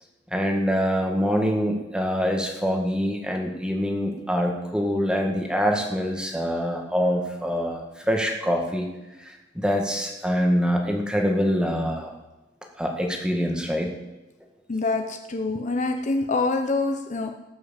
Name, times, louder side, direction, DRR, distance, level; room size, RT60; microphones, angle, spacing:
voice 1, 0.3-8.9 9.2-12.1 12.8-13.9, equal, 5° right, 2 dB, 1.7 m, -25 dB
voice 2, 14.7-17.3, left 3 dB, 40° left, 5 dB, 0.8 m, -25 dB
18.5 x 6.2 x 7.4 m, 1.0 s
head